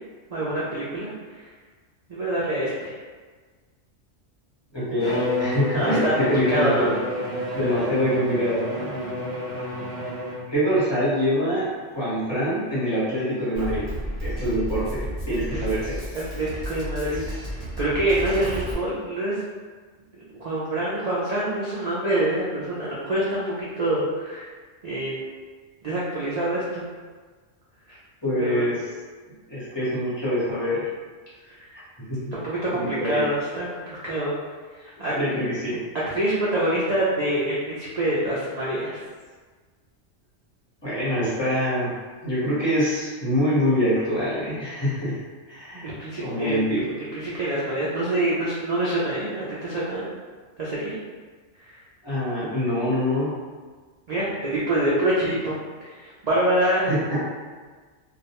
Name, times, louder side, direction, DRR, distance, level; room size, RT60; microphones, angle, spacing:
voice 1, 0.3-1.1 2.1-2.9 5.7-6.1 6.5-6.9 15.5-15.6 16.1-17.2 17.6-19.3 20.4-24.5 24.8-25.1 25.8-26.8 28.4-28.6 31.6-31.7 32.3-33.7 34.0-34.3 35.0-35.1 36.1-39.0 45.8-46.6 47.0-50.0 50.6-50.9 54.1-55.5 55.8-56.9, right 1 dB, 90° right, -8 dB, 0.3 m, -25 dB
voice 2, 4.7-6.9 7.5-9.0 10.5-13.9 14.2-16.0 28.2-28.8 29.5-30.9 32.1-32.2 32.8-33.2 35.1-35.8 40.8-42.0 42.2-45.2 45.5-45.9 46.2-46.9 52.0-53.3 56.9-57.2, equal, 25° left, -11 dB, 0.9 m, -25 dB
Bowed string instrument, 5.0-10.6, left 1 dB, 50° left, 0.8 m, -30 dB
Drum kit, 13.6-18.7, equal, 30° right, 0.8 m, -32 dB
2.3 x 2.1 x 2.8 m, 1.5 s
omnidirectional pair, 1.3 m